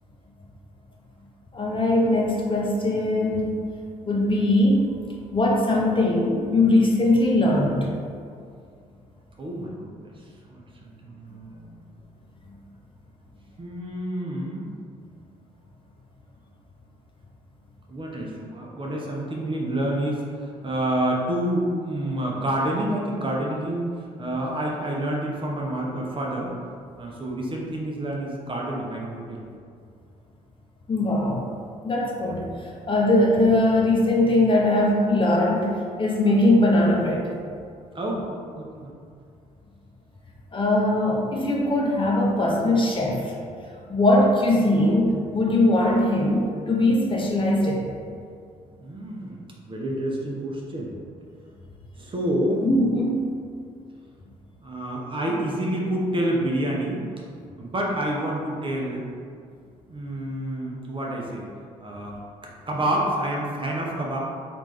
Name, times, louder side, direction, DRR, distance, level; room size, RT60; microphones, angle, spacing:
voice 1, 1.5-3.6 4.1-4.9 5.3-7.9 30.9-31.5 31.8-37.3 40.5-43.3 43.9-47.9 52.6-53.3, left 1 dB, 30° left, -2 dB, 0.7 m, -21 dB
voice 2, 9.4-10.2 10.5-11.8 13.6-14.7 17.9-26.6 27.0-29.4 37.9-38.9 48.8-50.9 52.0-52.7 54.6-57.0 57.6-59.1 59.9-61.5 61.8-62.2 62.7-64.2, right 1 dB, 30° right, -2 dB, 0.7 m, -28 dB
3.3 x 2.5 x 3.1 m, 2.2 s
hypercardioid pair, 50°, 18 cm